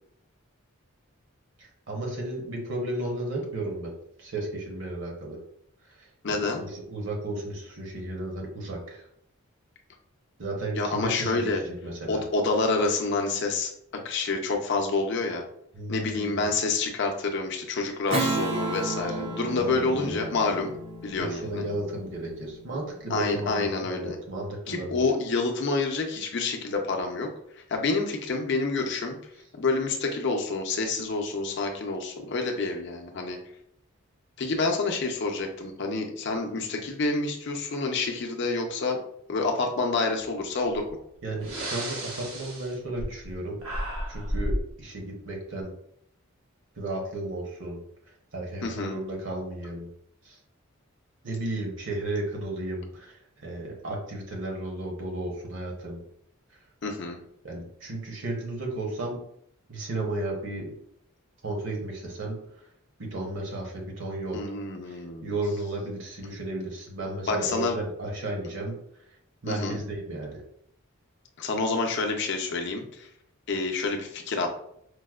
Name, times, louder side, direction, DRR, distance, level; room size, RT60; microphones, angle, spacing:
voice 1, 1.6-3.9 4.2-5.4 5.9-9.1 10.4-12.2 15.7-16.5 19.1-19.2 19.6-20.4 21.2-25.0 41.2-43.6 44.1-45.7 46.8-47.8 48.3-49.9 50.2-50.4 51.2-56.0 57.4-59.2 59.7-60.7 61.4-62.4 63.0-64.4 64.9-68.8 69.4-70.4, right 2 dB, 60° right, -1 dB, 0.8 m, -34 dB
voice 2, 6.2-6.6 10.8-11.6 12.1-13.7 14.0-15.4 15.9-20.7 21.0-21.6 23.1-24.2 24.7-27.3 27.5-29.2 29.5-33.4 34.4-39.0 39.3-40.8 48.6-48.9 56.8-57.2 64.3-65.3 67.3-67.8 69.5-69.8 71.4-73.1 73.5-74.5, left 3 dB, 55° left, 3 dB, 0.5 m, -28 dB
Strum, 18.1-23.0, right 2 dB, 25° right, 0.4 m, -33 dB
Breathing, 40.8-40.9 41.4-43.3 43.6-44.7, equal, 90° right, 1.0 m, -32 dB
4.6 x 2.1 x 2.3 m, 0.71 s
head